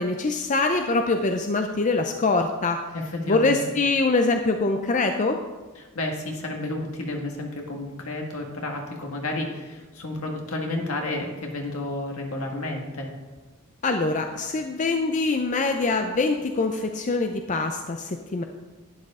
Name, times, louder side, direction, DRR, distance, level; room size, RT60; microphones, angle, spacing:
voice 1, 0.0-2.8 3.3-5.4 13.8-18.4, left 3 dB, 35° left, 5 dB, 0.5 m, -24 dB
voice 2, 2.9-3.6 5.8-13.1, left 2 dB, 65° left, 1 dB, 1.8 m, -31 dB
11.5 x 9.5 x 3.7 m, 1.2 s
head